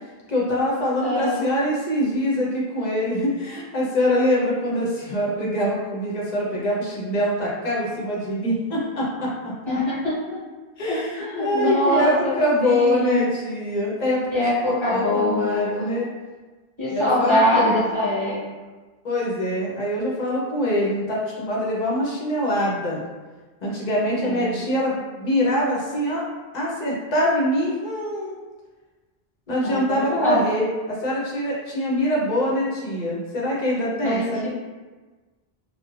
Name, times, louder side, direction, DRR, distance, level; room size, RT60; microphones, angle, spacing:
voice 1, 0.3-9.5 10.8-14.5 14.8-16.1 16.9-17.8 19.0-23.0 23.6-26.2 26.5-28.4 29.5-34.5, equal, 50° left, -5 dB, 0.7 m, -24 dB
voice 2, 1.0-1.4 9.6-10.4 10.9-12.3 12.6-13.3 14.3-15.9 16.8-18.4 24.2-24.5 29.6-30.4 34.0-34.5, left 1 dB, 30° left, -11 dB, 1.2 m, -23 dB
2.3 x 2.0 x 3.0 m, 1.3 s
omnidirectional pair, 1.0 m